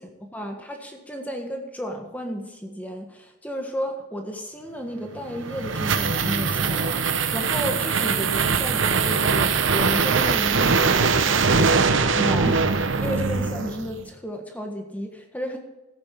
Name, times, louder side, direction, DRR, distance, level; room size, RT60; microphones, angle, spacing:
voice 1, 0.3-15.6, equal, 10° left, 3 dB, 1.4 m, -33 dB
sound 1, 5.2-14.0, right 5 dB, 75° right, 0.9 m, -22 dB
15.0 x 8.8 x 4.6 m, 1.0 s
head